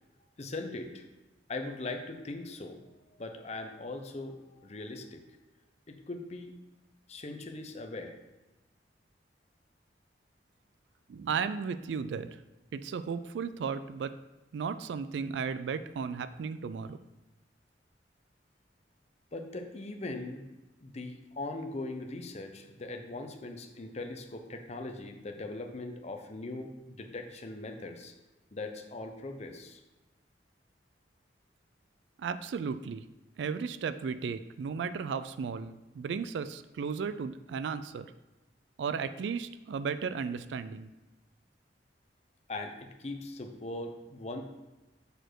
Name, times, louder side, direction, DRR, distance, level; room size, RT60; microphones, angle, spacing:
voice 1, 0.4-1.0 1.5-2.8 3.2-5.2 5.9-6.5 7.1-8.2 19.3-20.4 20.8-26.7 27.0-28.1 28.5-29.8 42.5-44.4, left 2 dB, 40° left, 4 dB, 0.7 m, -40 dB
voice 2, 11.1-12.3 12.7-14.1 14.5-17.0 32.2-33.0 33.4-38.1 38.8-40.9, right 6 dB, 80° right, 13 dB, 0.3 m, -35 dB
6.7 x 4.5 x 4.5 m, 1.1 s
head